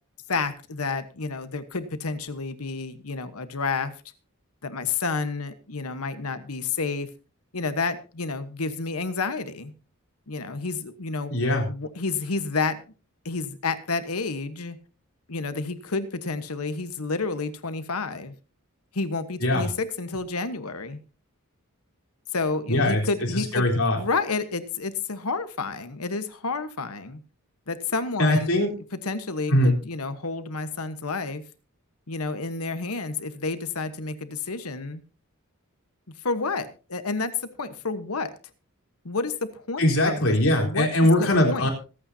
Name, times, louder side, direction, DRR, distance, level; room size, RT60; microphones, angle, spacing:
voice 1, 0.3-3.9 4.6-7.1 7.5-9.7 10.3-11.3 11.7-12.8 13.2-14.8 15.3-18.3 18.9-21.0 22.3-23.6 23.9-27.2 27.7-28.6 29.0-31.4 32.1-35.0 36.2-37.3 37.6-38.3 39.0-40.2 40.5-41.7, left 4 dB, 85° left, 11 dB, 1.3 m, -30 dB
voice 2, 11.3-11.7 19.4-19.7 22.7-23.0 23.5-24.0 28.2-28.7 29.5-29.7 39.8-41.7, left 1 dB, 70° left, 0 dB, 4.0 m, -21 dB
25.5 x 8.9 x 2.8 m, 0.35 s
head